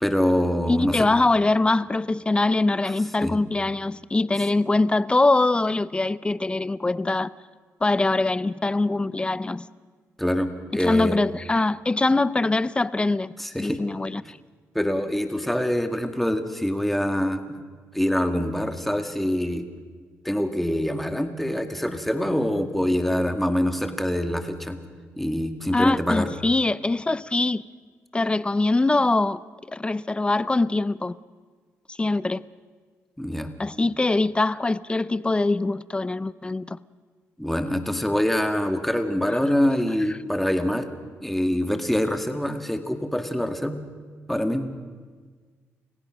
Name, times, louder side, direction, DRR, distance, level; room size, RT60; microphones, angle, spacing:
voice 1, 0.0-1.1 3.2-3.3 10.2-11.2 13.4-13.8 14.7-17.4 17.9-19.6 20.3-24.8 25.2-26.3 33.2-33.5 37.4-40.9 41.2-43.8 44.3-44.7, left 1 dB, 5° left, 2.0 m, -25 dB
voice 2, 0.7-7.3 7.8-9.7 10.8-13.3 13.6-14.4 25.7-27.6 28.1-29.4 29.7-31.2 31.9-32.4 33.6-36.8 39.3-39.4, left 2 dB, 20° left, 0.6 m, -23 dB
29.0 x 16.0 x 6.4 m
cardioid pair, 85°, 6 cm